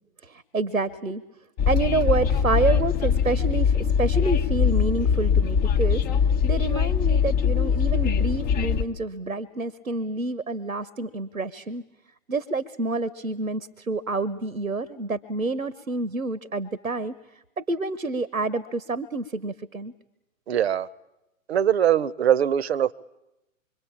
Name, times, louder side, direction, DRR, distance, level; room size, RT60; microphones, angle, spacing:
voice 1, 0.2-1.2 1.7-6.0 6.4-11.8 12.3-17.1 17.6-19.9, right 3 dB, 90° right, 1.2 m, -28 dB
Train, 1.6-8.8, left 7 dB, 20° left, 1.0 m, -22 dB
voice 2, 20.5-20.9 21.5-22.9, right 10 dB, 50° right, 0.9 m, -21 dB
26.0 x 23.5 x 8.7 m
figure-of-eight pair, 120°, 40 cm